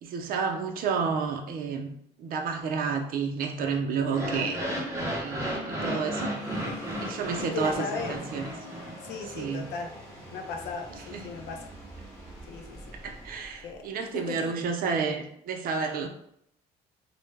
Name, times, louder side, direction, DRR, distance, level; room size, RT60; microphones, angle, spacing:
voice 1, 0.0-1.9 2.2-4.6 5.2-6.3 7.0-8.5 9.3-9.7 11.1-11.3 13.0-16.1, right 5 dB, 60° right, 3 dB, 0.5 m, -30 dB
sound 1, 4.0-9.2, equal, 15° right, 0.7 m, -33 dB
sound 2, 6.3-14.9, equal, 5° left, 1.0 m, -46 dB
voice 2, 7.4-8.2 9.0-9.9 10.3-11.7 12.5-13.0 13.6-14.6, left 4 dB, 80° left, 4 dB, 0.5 m, -37 dB
2.1 x 2.0 x 3.3 m, 0.72 s
cardioid pair, 110°, 17 cm